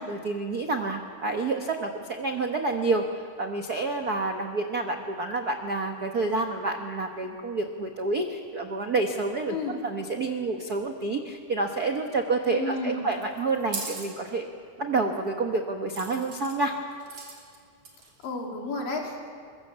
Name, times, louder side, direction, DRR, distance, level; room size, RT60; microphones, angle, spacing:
voice 1, 0.0-3.0 3.4-14.5 14.8-16.7, right 3 dB, 85° right, 4 dB, 0.8 m, -28 dB
voice 2, 12.5-13.1 18.2-19.3, left 3 dB, 85° left, 0 dB, 4.4 m, -32 dB
sound 1, 13.1-14.1 15.9-16.6 17.0-17.6 17.8-18.3, right 4 dB, 45° right, 3.9 m, -38 dB
22.5 x 22.0 x 7.5 m, 2.3 s
omnidirectional pair, 3.8 m